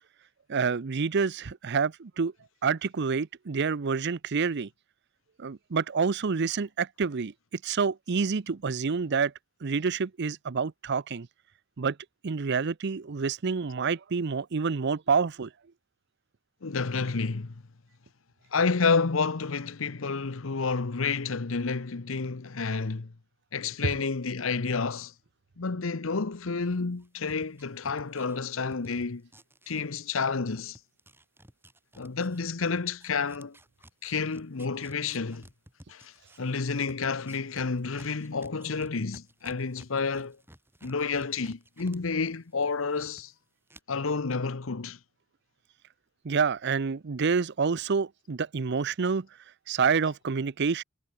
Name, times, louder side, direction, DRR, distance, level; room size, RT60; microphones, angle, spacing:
voice 1, 0.5-2.3 2.6-4.7 5.4-7.3 7.6-9.3 9.6-11.3 11.8-12.0 12.2-15.5 46.2-49.3 49.7-50.8, right 5 dB, 55° right, 0.6 m, -28 dB
voice 2, 16.6-17.5 18.5-23.1 23.5-25.1 25.6-29.3 29.7-30.8 32.0-33.6 34.0-35.4 35.9-40.4 40.8-43.3 43.9-45.0, left 4 dB, 75° left, 0.9 m, -30 dB
sound 1, 26.7-30.2 30.5-42.0 42.3-43.2 43.7-43.8, right 1 dB, 10° right, 2.9 m, -54 dB
head